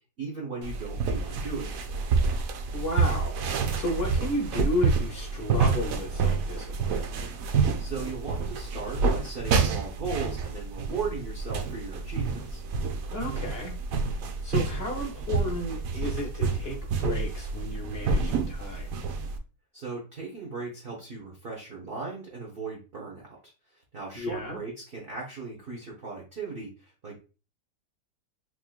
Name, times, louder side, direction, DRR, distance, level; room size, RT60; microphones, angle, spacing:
voice 1, 0.2-1.7 7.8-12.6 19.7-23.3 23.7-27.2, right 4 dB, 45° right, -2 dB, 0.8 m, -37 dB
sound 1, 0.6-19.4, right 4 dB, 70° right, 0.8 m, -28 dB
voice 2, 2.7-3.3 3.7-7.1 13.1-13.7 14.4-18.9 24.1-24.6, left 1 dB, 50° left, 0 dB, 0.7 m, -33 dB
3.7 x 3.0 x 2.3 m, 0.33 s
omnidirectional pair, 1.8 m